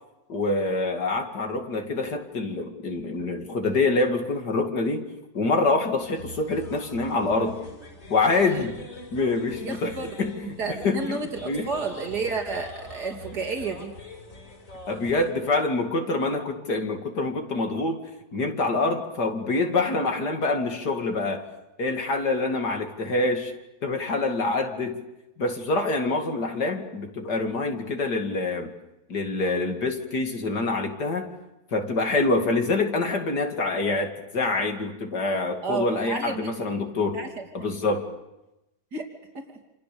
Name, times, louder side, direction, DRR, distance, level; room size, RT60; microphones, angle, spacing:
voice 1, 0.3-5.1 5.3-7.6 8.1-8.8 9.1-9.9 10.2-11.7 14.9-18.0 18.3-21.4 21.8-23.5 23.8-25.0 25.4-28.7 29.1-31.3 31.7-37.2 37.5-38.0, left 3 dB, 85° left, 4 dB, 3.1 m, -26 dB
sound 1, 6.0-15.3, left 2 dB, 50° left, 6.9 m, -43 dB
voice 2, 9.6-10.1 10.6-13.9 35.6-36.7 37.1-37.5 38.9-39.1 39.3-39.4, right 4 dB, 80° right, 3 dB, 3.5 m, -31 dB
28.5 x 27.5 x 6.9 m, 0.95 s
omnidirectional pair, 1.7 m